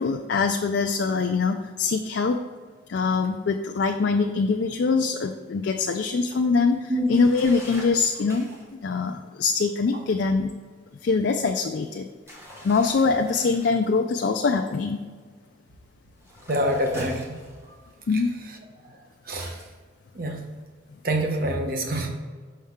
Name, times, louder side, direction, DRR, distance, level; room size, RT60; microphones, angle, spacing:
voice 1, 0.0-2.4 2.9-8.5 8.8-10.5 11.0-12.1 12.6-15.0 18.1-18.3, left 4 dB, 70° left, 4 dB, 0.4 m, -23 dB
sound 1, 7.1-8.7 12.3-13.8 16.2-17.9 19.4-19.7, equal, 15° right, 1.0 m, -44 dB
voice 2, 16.5-17.4 19.3-19.6 20.1-20.4 21.0-22.1, right 1 dB, 50° right, 3 dB, 0.8 m, -25 dB
5.6 x 5.5 x 3.6 m, 1.5 s
head